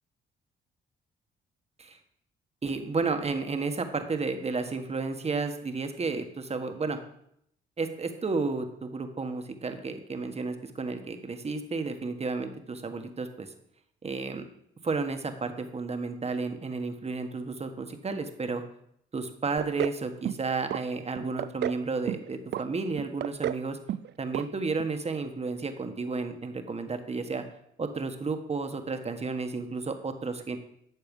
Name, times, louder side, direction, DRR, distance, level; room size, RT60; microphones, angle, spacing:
voice 1, 2.6-7.0 7.8-13.5 14.0-14.5 14.8-18.6 19.1-23.8 24.2-27.4 27.8-30.6, right 4 dB, 30° right, 7 dB, 1.5 m, -32 dB
sound 1, 19.6-20.0 20.3-20.8 21.2-21.8 22.1-22.6 23.0-23.6 23.9-24.1 24.3-24.5 24.8-24.9, right 12 dB, 60° right, 0.4 m, -31 dB
12.5 x 7.5 x 5.4 m, 0.73 s
cardioid pair, 90°, 20 cm